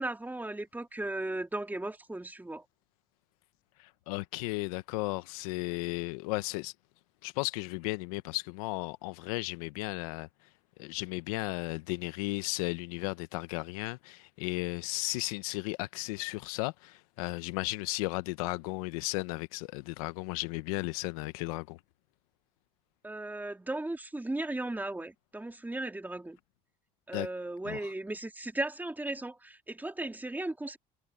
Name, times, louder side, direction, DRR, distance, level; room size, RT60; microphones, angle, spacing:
voice 1, 0.0-2.6 23.0-26.4 27.1-30.8, right 2 dB, 10° right, 2.8 m, -36 dB
voice 2, 3.8-6.7 7.2-10.3 10.8-21.8 27.1-27.3 27.6-27.9, left 22 dB, 85° left, 1.1 m, -35 dB
supercardioid pair, 80°, 18 cm